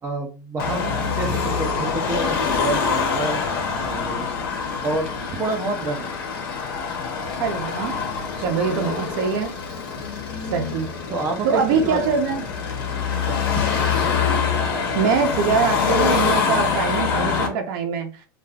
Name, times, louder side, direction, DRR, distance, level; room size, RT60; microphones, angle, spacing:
voice 1, 0.0-4.4 4.7-6.2 10.3-10.5 11.1-12.1 12.8-13.8, right 3 dB, 20° right, 0.5 m, -29 dB
Car passing by / Traffic noise roadway noise / Engine, 0.6-17.5, left 6 dB, 75° left, 1.0 m, -25 dB
sound 1, 3.7-12.7, left 3 dB, 25° left, 0.9 m, -44 dB
voice 2, 7.4-7.9 8.4-9.5 10.5-10.9 11.4-12.4 14.9-18.1, right 6 dB, 60° right, 0.7 m, -23 dB
2.4 x 2.3 x 3.4 m
supercardioid pair, 135°, 12 cm